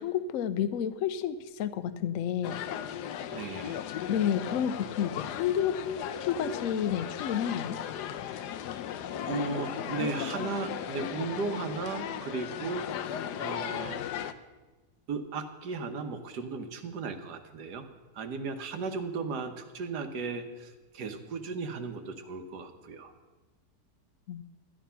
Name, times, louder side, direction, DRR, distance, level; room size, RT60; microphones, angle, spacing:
voice 1, 0.0-2.6 4.1-7.8 24.3-24.4, left 9 dB, 65° left, 13 dB, 0.9 m, -30 dB
sound 1, 2.4-14.3, left 9 dB, 90° left, 1.2 m, -36 dB
voice 2, 3.3-3.9 6.4-6.5 9.2-14.0 15.1-17.9 18.1-23.1, right 4 dB, 80° right, 8 dB, 1.6 m, -36 dB
13.0 x 10.0 x 5.6 m, 1.2 s
omnidirectional pair, 1.7 m